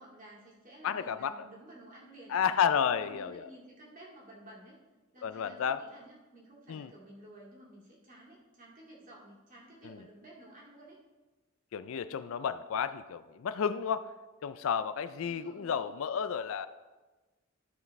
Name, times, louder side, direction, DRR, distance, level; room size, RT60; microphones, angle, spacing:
voice 1, 0.0-2.6 3.0-4.8 5.1-11.0 15.2-15.9, right 1 dB, 40° right, -4 dB, 2.3 m, -53 dB
voice 2, 0.8-1.5 2.3-3.5 5.2-5.8 6.7-6.9 9.8-10.0 11.7-14.1 14.4-16.7, left 7 dB, 65° left, 13 dB, 0.4 m, -32 dB
13.0 x 6.0 x 3.2 m, 1.2 s
head